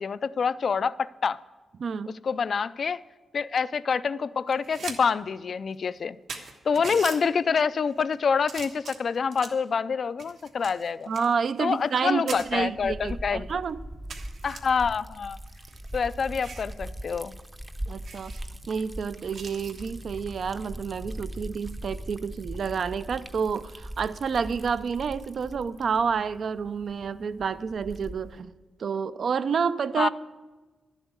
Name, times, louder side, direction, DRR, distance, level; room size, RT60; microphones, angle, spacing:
voice 1, 0.0-1.4 2.2-3.0 3.3-6.2 6.6-11.1 11.6-13.5 14.4-15.4 15.9-17.3 30.0-30.1, left 6 dB, 50° left, 0.3 m, -26 dB
voice 2, 1.8-2.2 11.1-13.8 17.9-18.3 18.7-28.5 28.8-30.1, right 6 dB, 55° right, 0.4 m, -29 dB
sound 1, 4.5-5.0 5.3-5.4 6.0-6.1 6.3-7.2 7.9-8.1 8.5-9.6 10.2-12.0 12.3-12.5 13.1-13.2 13.5-13.6 14.1-14.6 15.5-16.7 17.1-17.3 17.5-17.6 18.0-18.4 19.3-19.9 21.6-21.9, right 5 dB, 75° right, 1.3 m, -41 dB
Liquid, 12.3-28.4, right 1 dB, 15° right, 0.6 m, -40 dB
11.5 x 7.3 x 8.2 m
wide cardioid pair, 150°, 0 cm